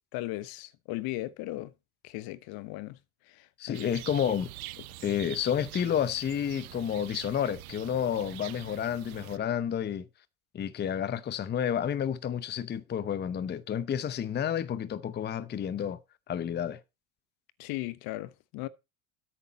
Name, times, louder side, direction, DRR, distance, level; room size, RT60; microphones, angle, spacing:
voice 1, 0.1-1.7 2.0-3.0 3.3-3.9 17.6-18.7, left 18 dB, 60° left, 1.1 m, -37 dB
voice 2, 3.6-4.5 5.0-10.1 10.5-16.0 16.3-16.8, left 9 dB, 25° left, 0.7 m, -30 dB
sound 1, 3.7-9.4, right 16 dB, 85° right, 0.8 m, -45 dB
10.0 x 8.7 x 4.1 m
hypercardioid pair, 95°, 42 cm